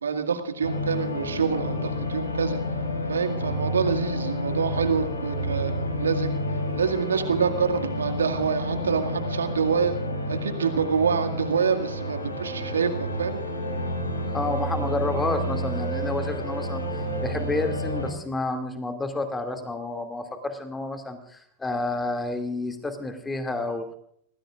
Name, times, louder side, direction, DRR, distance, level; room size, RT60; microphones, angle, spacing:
voice 1, 0.0-2.6 3.1-5.7 6.0-6.4 6.8-9.9 10.3-13.4, right 6 dB, 70° right, 5 dB, 2.1 m, -26 dB
sound 1, 0.6-18.1, equal, 80° left, 4.5 m, -30 dB
voice 2, 14.3-23.9, left 2 dB, 10° left, 6 dB, 2.4 m, -30 dB
28.0 x 18.5 x 2.5 m, 0.65 s
figure-of-eight pair, 90°, 0 cm